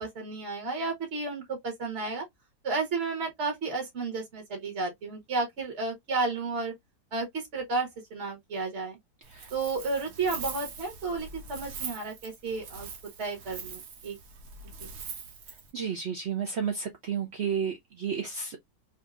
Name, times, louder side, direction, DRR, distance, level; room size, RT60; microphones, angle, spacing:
voice 1, 0.0-2.2 2.6-6.7 7.1-9.0 9.5-12.9 13.2-14.2 14.8-14.9, right 3 dB, 40° right, 1.4 m, -32 dB
Wind, 9.2-15.7, right 5 dB, 65° right, 1.4 m, -42 dB
voice 2, 15.7-18.6, right 7 dB, 90° right, 0.5 m, -32 dB
3.6 x 2.8 x 2.4 m
omnidirectional pair, 2.0 m